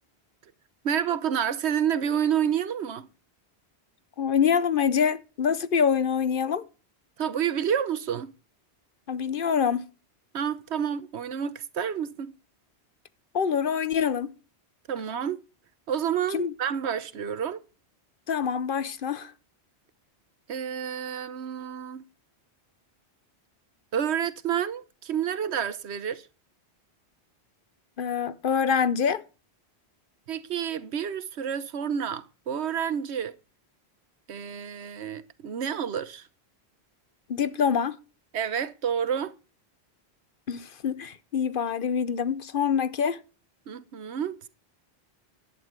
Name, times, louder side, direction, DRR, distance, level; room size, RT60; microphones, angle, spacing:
voice 1, 0.8-3.1 7.2-8.3 10.3-12.3 14.9-15.4 15.9-17.6 20.5-22.0 23.9-26.3 30.3-33.3 34.3-36.3 38.3-39.3 43.7-44.5, right 8 dB, 85° right, 1.2 m, -29 dB
voice 2, 4.2-6.6 9.1-9.9 13.3-14.3 16.3-16.5 18.3-19.3 28.0-29.2 37.3-38.0 40.5-43.2, left 7 dB, 55° left, 0.9 m, -25 dB
11.5 x 9.5 x 4.5 m
omnidirectional pair, 1.1 m